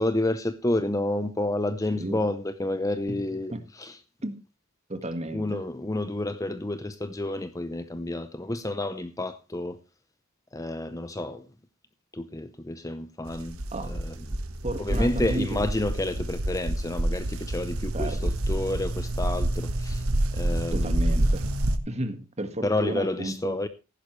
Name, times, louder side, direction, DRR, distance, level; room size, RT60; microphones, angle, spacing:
voice 1, 0.0-4.0 5.3-9.8 10.5-11.5 12.1-14.4 14.8-20.1 20.3-21.2 22.6-23.7, left 1 dB, 15° left, 0.6 m, -30 dB
voice 2, 4.9-5.6 13.7-14.0 14.6-15.6 17.9-18.3 20.7-21.5 21.9-23.6, right 1 dB, 30° right, 1.7 m, -33 dB
sound 1, 13.3-21.8, right 1 dB, 85° right, 1.4 m, -28 dB
15.0 x 11.0 x 3.2 m
head